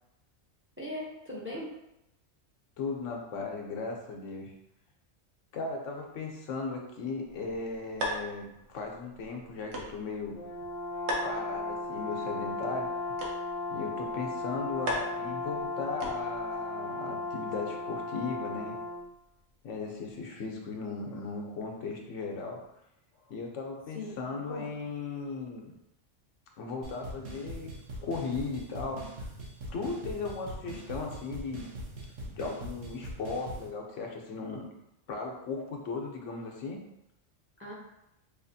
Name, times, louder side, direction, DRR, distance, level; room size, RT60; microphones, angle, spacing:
voice 1, 0.8-1.7 23.9-24.7 37.6-37.7, left 1 dB, 20° right, -4 dB, 0.4 m, -40 dB
voice 2, 2.8-4.5 5.5-10.4 11.2-13.2 13.7-18.8 19.6-22.6 23.3-25.7 26.6-29.3 29.7-31.7 32.2-34.7 35.1-36.8, left 4 dB, 90° left, 1 dB, 1.0 m, -37 dB
sound 1, 7.2-16.6, equal, 70° right, 1.0 m, -40 dB
Brass instrument, 10.3-19.1, left 3 dB, 55° left, 0.5 m, -36 dB
sound 2, 26.8-33.7, right 1 dB, 90° right, 1.2 m, -42 dB
4.7 x 2.4 x 2.6 m, 0.87 s
omnidirectional pair, 1.2 m